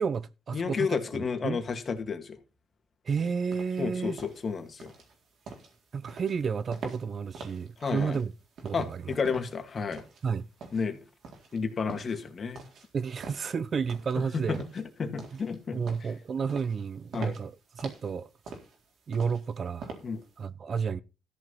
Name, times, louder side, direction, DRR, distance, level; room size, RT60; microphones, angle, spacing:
voice 1, 0.0-1.6 3.0-4.2 5.9-8.3 8.6-9.1 10.2-10.5 12.9-14.6 15.3-15.4 15.7-18.3 19.1-20.0 20.4-21.0, right 6 dB, 45° right, 0.7 m, -31 dB
voice 2, 0.5-2.4 3.8-4.9 7.8-8.2 8.7-10.0 10.7-11.0 11.5-12.6 14.5-15.8 17.1-17.4 20.0-20.2, left 5 dB, 40° left, 2.3 m, -31 dB
sound 1, 3.5-20.4, right 4 dB, 65° right, 3.9 m, -46 dB
13.5 x 6.4 x 5.7 m
cardioid pair, 90°, 0 cm